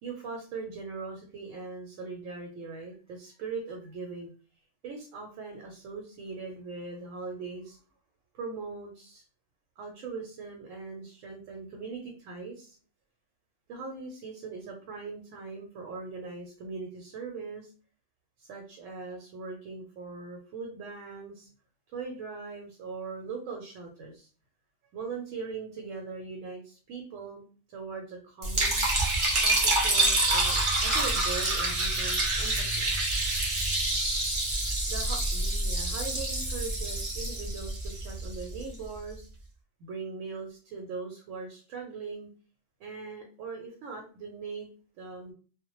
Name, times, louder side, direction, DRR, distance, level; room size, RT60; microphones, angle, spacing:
voice 1, 0.0-4.3 4.8-7.8 8.3-9.2 9.8-12.8 13.7-17.7 18.4-21.5 21.9-24.3 24.9-27.4 27.7-28.8 29.4-32.9 34.9-39.3 39.8-42.3 42.8-44.7 45.0-45.3, right 4 dB, 80° right, 1 dB, 0.9 m, -40 dB
Liquid, 28.4-38.6, right 2 dB, 35° right, 0.5 m, -27 dB
2.1 x 2.0 x 2.9 m, 0.38 s
omnidirectional pair, 1.3 m